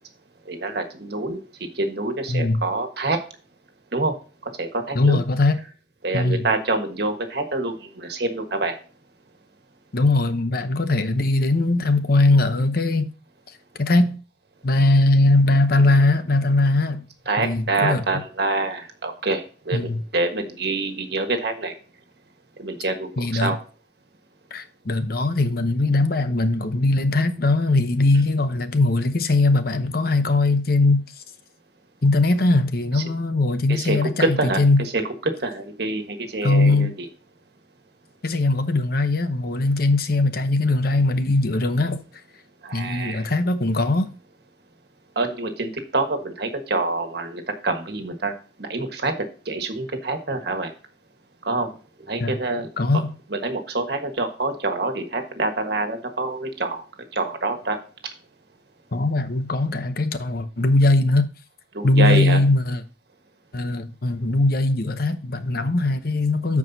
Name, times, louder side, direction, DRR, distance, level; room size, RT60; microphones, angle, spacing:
voice 1, 0.4-1.4 1.7-3.2 3.9-4.1 4.4-5.2 6.0-8.7 17.3-21.7 22.6-23.6 33.0-33.1 33.7-37.1 42.6-43.3 45.1-48.3 48.6-49.1 49.4-50.7 51.4-51.7 52.1-52.7 53.3-56.8 57.1-57.8 61.7-62.4, right 2 dB, 65° right, 1.4 m, -26 dB
voice 2, 2.3-2.6 4.9-5.6 6.1-6.5 9.9-13.1 13.8-14.2 14.6-17.1 17.4-18.0 19.7-20.0 23.2-23.6 24.5-31.0 32.0-34.8 36.4-36.9 38.2-42.0 42.7-44.1 52.2-52.3 52.8-53.1 58.9-61.3 61.8-62.8 63.5-66.6, left 2 dB, 55° left, 0.9 m, -20 dB
14.0 x 4.8 x 2.7 m
head